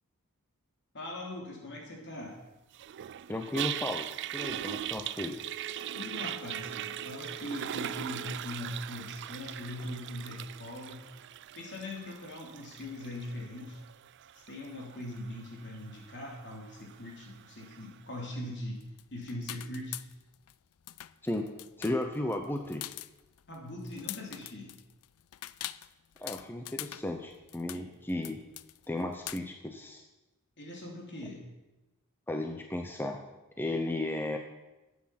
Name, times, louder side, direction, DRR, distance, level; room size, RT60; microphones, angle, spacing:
voice 1, 0.9-2.4 5.9-11.0 11.5-13.8 14.3-18.8 19.1-20.0 23.5-24.7 27.7-27.9 30.6-31.4, left 1 dB, 55° left, -1 dB, 3.3 m, -41 dB
Toilet flush, 2.7-17.9, right 11 dB, 55° right, 0.4 m, -41 dB
voice 2, 3.3-5.4 21.2-21.5 21.8-22.8 26.2-28.4 28.9-30.0 32.3-33.2 33.6-34.4, left 1 dB, 10° left, 4 dB, 0.7 m, -34 dB
Telephone, 5.4-8.5 8.9-9.0, right 4 dB, 85° right, 1.0 m, -48 dB
sound 1, 18.8-20.5 20.8-29.4, left 15 dB, 75° left, 0.4 m, -43 dB
12.5 x 8.6 x 5.9 m, 1.1 s
head